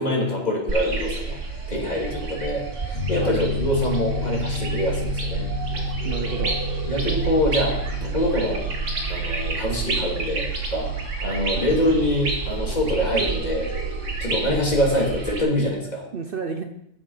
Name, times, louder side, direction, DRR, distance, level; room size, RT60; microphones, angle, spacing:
voice 1, 0.0-1.4 1.7-5.5 6.9-8.6 9.1-10.9 11.2-13.7 14.2-16.1, left 1 dB, 35° left, -2 dB, 2.9 m, -25 dB
sound 1, 0.7-15.4, right 3 dB, 75° right, 2.2 m, -30 dB
Piano, 2.9-15.1, right 1 dB, 65° left, 2.7 m, -31 dB
voice 2, 6.0-6.6 11.5-11.7 14.5-14.6 16.1-16.6, right 5 dB, 50° right, 5 dB, 0.9 m, -31 dB
11.5 x 7.3 x 5.7 m, 0.79 s
omnidirectional pair, 1.3 m